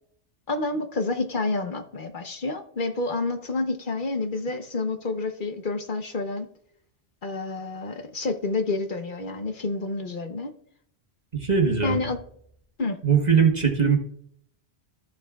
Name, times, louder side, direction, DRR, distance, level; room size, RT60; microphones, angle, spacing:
voice 1, 0.5-6.5 7.2-10.5 11.8-12.2 12.8-13.0, left 3 dB, 50° left, 6 dB, 1.0 m, -29 dB
voice 2, 11.3-12.0 13.0-14.0, right 6 dB, 40° right, 2 dB, 1.4 m, -20 dB
14.0 x 7.1 x 2.4 m, 0.66 s
omnidirectional pair, 1.2 m